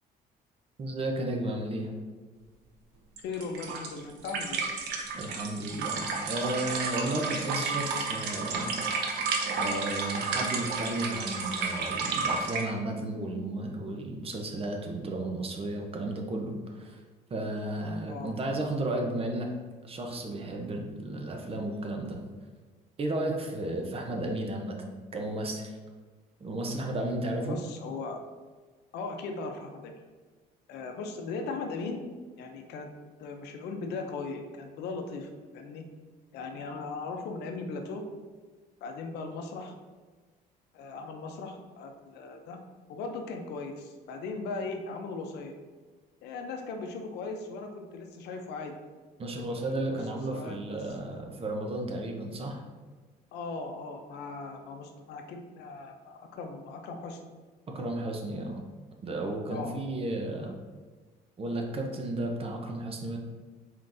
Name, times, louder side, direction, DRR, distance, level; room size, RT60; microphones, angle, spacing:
voice 1, 0.8-1.9 5.1-8.8 9.5-17.0 17.3-19.5 19.8-22.2 23.0-24.8 25.1-25.8 26.4-27.6 49.2-52.6 57.7-58.6 59.0-60.5 61.4-63.2, right 1 dB, 35° right, 2 dB, 0.7 m, -33 dB
voice 2, 3.2-4.6 18.1-18.3 27.5-28.2 28.9-30.0 30.7-32.0 32.4-32.9 33.2-35.8 36.3-38.0 38.8-39.7 40.7-42.6 42.9-45.5 46.2-48.7 49.9-50.0 50.3-50.6 51.0-51.2 53.3-57.2 59.5-59.7, left 4 dB, 80° left, 4 dB, 0.6 m, -38 dB
sound 1, 3.2-12.6, right 4 dB, 80° right, 0.7 m, -32 dB
4.5 x 3.7 x 2.6 m, 1.4 s
cardioid pair, 110°, 17 cm